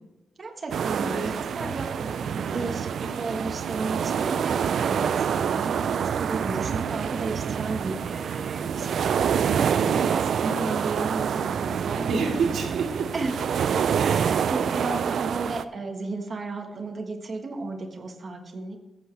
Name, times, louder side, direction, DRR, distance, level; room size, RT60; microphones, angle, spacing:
voice 1, 0.4-1.2 1.5-1.9 2.4-2.9 3.2-10.2 13.1-13.4 14.0-18.8, right 3 dB, 30° right, 2 dB, 1.3 m, -34 dB
sound 1, 0.7-15.6, right 7 dB, 65° right, 0.4 m, -27 dB
voice 2, 0.9-3.1 9.7-13.1 13.9-14.4, right 4 dB, 80° right, 2 dB, 2.0 m, -31 dB
15.5 x 8.0 x 3.3 m, 1.1 s
wide cardioid pair, 180°, 0 cm